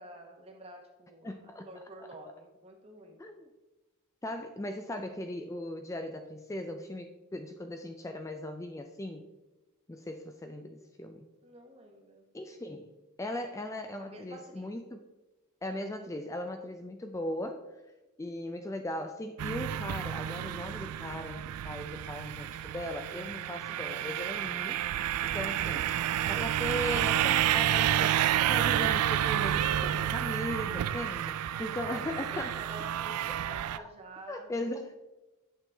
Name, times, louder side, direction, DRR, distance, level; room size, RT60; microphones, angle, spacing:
voice 1, 0.0-1.3 1.6-3.2 10.5-10.6 11.4-12.2 13.5-13.6 14.0-14.7 25.8-26.3 31.5-34.7, right 2 dB, 25° right, 1 dB, 1.0 m, -49 dB
voice 2, 1.2-1.7 3.2-3.5 4.2-9.3 9.9-11.3 12.3-12.9 13.2-15.0 15.6-17.6 18.2-24.8 25.2-25.9 26.3-32.6 33.8-33.9 34.3-35.0, left 1 dB, 15° left, 6 dB, 0.3 m, -38 dB
sound 1, 19.4-33.8, right 11 dB, 80° right, 0.3 m, -30 dB
8.4 x 7.1 x 3.4 m, 1.1 s
head